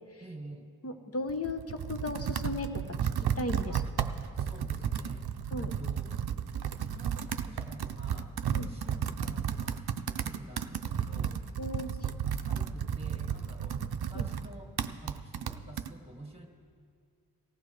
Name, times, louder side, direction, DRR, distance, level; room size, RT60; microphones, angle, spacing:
voice 1, 0.2-0.7 3.7-3.9 4.3-5.3 5.6-6.2 6.6-11.4 11.9-16.5, right 2 dB, 15° right, 1 dB, 2.0 m, -49 dB
voice 2, 0.8-3.8 5.5-5.7 8.5-8.7 11.6-11.9 14.1-14.3, left 2 dB, 40° left, 7 dB, 1.0 m, -36 dB
Computer keyboard, 1.3-15.9, right 8 dB, 90° right, 0.5 m, -33 dB
19.0 x 15.0 x 3.3 m, 2.2 s
wide cardioid pair, 45°, 37 cm